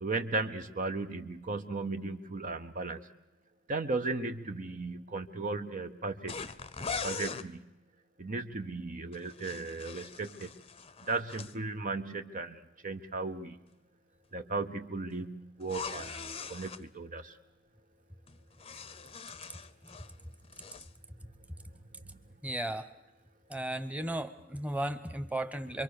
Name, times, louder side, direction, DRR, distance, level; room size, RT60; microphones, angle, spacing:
voice 1, 0.0-3.0 3.7-6.3 7.0-7.6 8.2-10.5 11.1-13.6 14.3-17.3, right 3 dB, 40° right, 6 dB, 0.8 m, -36 dB
sound 1, 6.3-7.5 9.1-11.5 15.6-16.8 18.3-20.1 20.4-20.9, left 5 dB, 30° left, 0.7 m, -41 dB
voice 2, 22.4-22.9 23.5-25.8, right 1 dB, 5° right, 9 dB, 1.2 m, -35 dB
26.0 x 23.5 x 6.7 m, 0.99 s
head